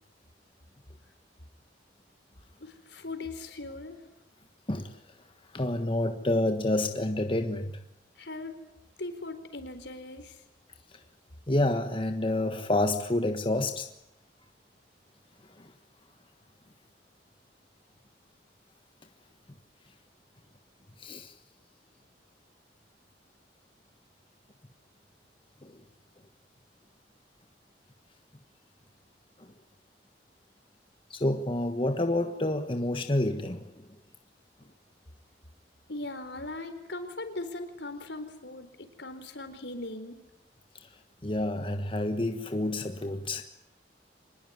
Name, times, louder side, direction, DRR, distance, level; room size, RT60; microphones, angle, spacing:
voice 1, 2.6-4.0 8.2-8.5 9.0-10.4 35.9-40.2, left 2 dB, 75° left, 4.2 m, -39 dB
voice 2, 4.7-5.0 5.5-7.8 10.9-11.0 11.5-13.9 15.6-15.7 21.0-21.3 25.6-25.8 29.4-29.5 31.1-33.8 41.2-43.4, left 1 dB, 30° left, 1.4 m, -28 dB
25.5 x 20.5 x 9.5 m
head